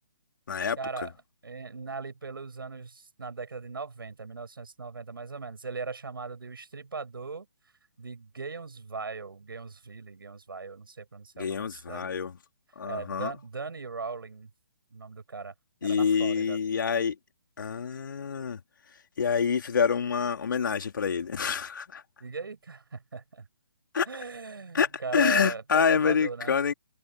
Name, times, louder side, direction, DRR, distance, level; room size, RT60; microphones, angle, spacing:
voice 1, 0.8-1.1 1.4-7.5 8.0-12.1 12.9-14.5 14.9-15.5 15.8-16.6 22.2-23.5 24.1-26.6, right 4 dB, 75° right, 7.5 m, -38 dB
voice 2, 11.4-12.3 12.8-13.3 15.8-17.1 17.6-18.6 19.2-22.0 23.9-24.1 24.7-24.9 25.1-26.7, left 6 dB, 60° left, 3.1 m, -26 dB
figure-of-eight pair, 140°, 12 cm